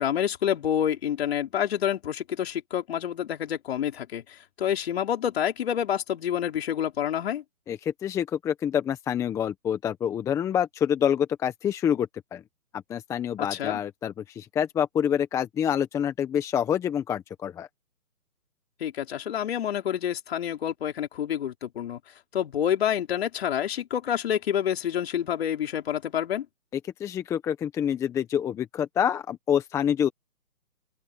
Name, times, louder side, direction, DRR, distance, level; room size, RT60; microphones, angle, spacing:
voice 1, 0.0-7.4 13.4-13.8 18.8-22.0 22.3-26.5, left 10 dB, 40° left, 4.9 m, -28 dB
voice 2, 7.7-12.4 12.7-17.7 27.0-30.1, left 9 dB, 5° left, 1.3 m, -27 dB
open air
hypercardioid pair, 150°, 45 cm